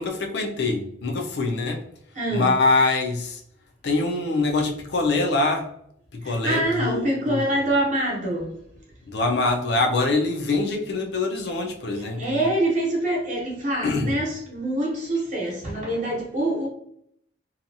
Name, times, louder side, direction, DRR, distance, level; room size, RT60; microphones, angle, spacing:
voice 1, 0.0-1.8 2.3-3.4 3.8-5.7 6.1-7.5 9.1-12.5 13.8-14.1, left 3 dB, 60° left, 2 dB, 0.4 m, -24 dB
voice 2, 2.1-2.5 6.2-8.5 11.9-16.7, right 1 dB, 40° right, -3 dB, 0.8 m, -25 dB
2.7 x 2.2 x 2.6 m, 0.71 s
head